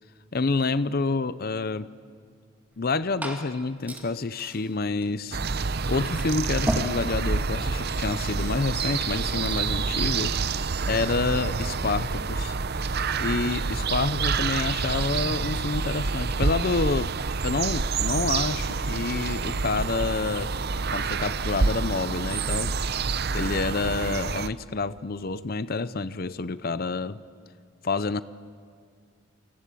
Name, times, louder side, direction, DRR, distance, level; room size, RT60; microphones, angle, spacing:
voice 1, 0.3-1.9 2.8-5.4 5.9-10.3 10.9-12.5 13.2-17.1 17.4-20.5 20.9-22.7 23.3-27.2 27.8-28.2, left 3 dB, 45° left, 15 dB, 0.6 m, -28 dB
Liquid, 2.7-9.8, equal, 5° right, 2.2 m, -38 dB
sound 1, 5.3-24.5, right 4 dB, 50° right, 0.7 m, -28 dB
29.0 x 24.0 x 8.5 m, 2.2 s
head